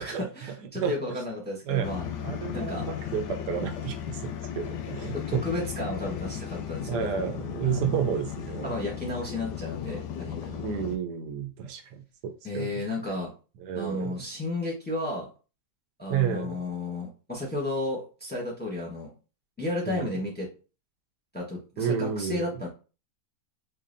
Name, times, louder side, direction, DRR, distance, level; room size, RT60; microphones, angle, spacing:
voice 1, 0.0-2.1 2.5-2.8 5.1-7.3 7.6-7.9 8.6-10.6 12.4-13.3 13.7-15.3 16.0-19.1 19.6-20.5 21.3-22.7, left 2 dB, 10° left, -3 dB, 0.8 m, -33 dB
sound 1, 1.8-11.0, left 8 dB, 90° left, 1.2 m, -36 dB
voice 2, 2.2-5.4 6.9-8.7 10.6-12.7 13.6-14.2 16.1-16.6 19.9-20.2 21.8-22.6, right 8 dB, 85° right, 6 dB, 1.2 m, -31 dB
4.0 x 2.7 x 2.6 m, 0.34 s
omnidirectional pair, 1.7 m